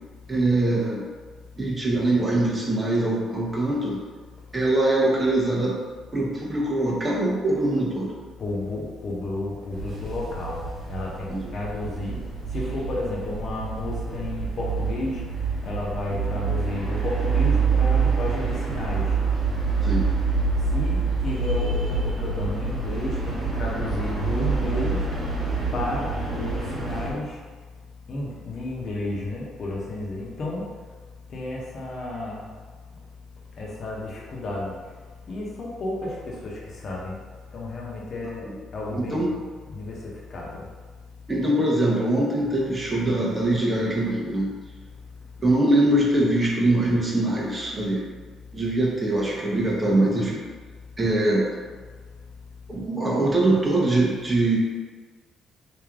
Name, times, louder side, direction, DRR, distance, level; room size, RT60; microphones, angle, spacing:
voice 1, 0.3-1.0 1.6-4.0 4.5-5.8 6.1-8.1 11.3-11.4 19.8-20.1 38.4-38.5 38.9-39.3 41.3-44.5 45.4-48.0 48.5-50.4 51.0-51.5 52.7-54.6, right 1 dB, 25° right, -4 dB, 0.9 m, -23 dB
voice 2, 8.4-12.2 12.5-19.2 20.7-25.1 25.7-27.4 28.1-30.7 31.3-32.5 33.6-34.8 35.3-37.1 37.5-38.5 38.7-39.3 39.7-40.6, left 2 dB, 55° left, -4 dB, 1.0 m, -32 dB
sound 1, 9.7-27.1, right 4 dB, 50° right, 1.2 m, -26 dB
3.3 x 2.9 x 3.6 m, 1.5 s
cardioid pair, 80°, 0 cm